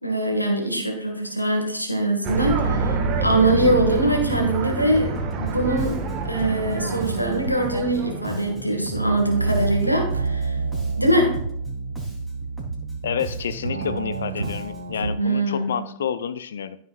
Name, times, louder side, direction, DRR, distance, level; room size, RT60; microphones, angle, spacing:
voice 1, 0.0-10.6 11.0-11.4 15.2-15.8, right 1 dB, 85° left, 2 dB, 2.0 m, -23 dB
sound 1, 2.2-8.5, right 3 dB, 35° right, 1.8 m, -29 dB
sound 2, 2.3-15.2, right 4 dB, 75° right, 0.8 m, -29 dB
Bass guitar, 5.1-15.0, right 2 dB, ahead, 3.7 m, -37 dB
voice 2, 13.0-16.8, left 8 dB, 65° left, 14 dB, 0.5 m, -29 dB
15.0 x 6.6 x 2.5 m, 0.70 s
figure-of-eight pair, 90°, 0 cm